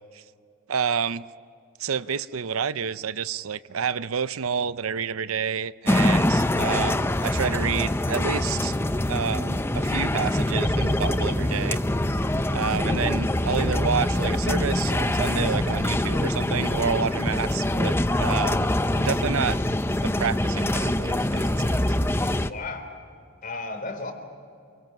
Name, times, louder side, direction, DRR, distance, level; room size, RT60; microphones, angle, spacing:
voice 1, 0.7-1.2 1.8-8.7 9.1-11.8 12.5-18.7 19.0-19.6 20.0-21.8, right 6 dB, 85° right, 15 dB, 0.6 m, -29 dB
sound 1, 5.9-22.5, left 1 dB, 10° left, 0.6 m, -24 dB
voice 2, 22.4-22.9 23.4-24.1, left 3 dB, 40° left, 6 dB, 3.5 m, -34 dB
29.0 x 23.5 x 6.1 m, 2.4 s
head